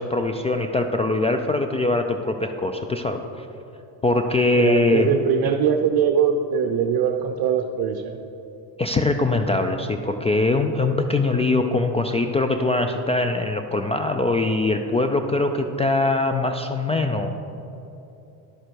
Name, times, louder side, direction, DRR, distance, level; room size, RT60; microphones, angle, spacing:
voice 1, 0.0-3.5 4.0-5.1 8.8-17.4, left 2 dB, 15° left, 6 dB, 0.3 m, -22 dB
voice 2, 4.6-8.2, right 7 dB, 50° right, 6 dB, 0.7 m, -22 dB
11.0 x 6.7 x 4.6 m, 2.8 s
supercardioid pair, 85°, 47 cm